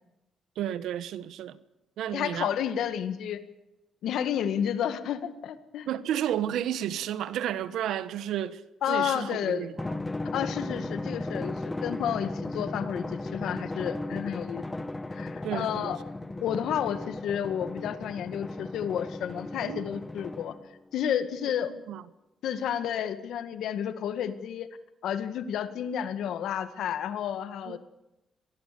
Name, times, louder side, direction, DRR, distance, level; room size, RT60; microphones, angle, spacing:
voice 1, 0.6-1.6 2.0-2.5 5.9-8.6 8.9-10.0 15.4-16.0 19.6-19.9 21.9-22.0 27.7-27.8, right 10 dB, 80° right, 1.3 m, -32 dB
voice 2, 2.1-3.4 4.0-5.9 8.8-9.7 10.3-14.6 15.2-16.0 16.4-20.5 20.9-21.7 22.4-24.7 25.0-27.8, left 9 dB, 80° left, 2.0 m, -31 dB
Drum, 9.8-20.8, left 2 dB, 20° left, 1.3 m, -36 dB
24.5 x 20.0 x 7.0 m
cardioid pair, 70°, 0 cm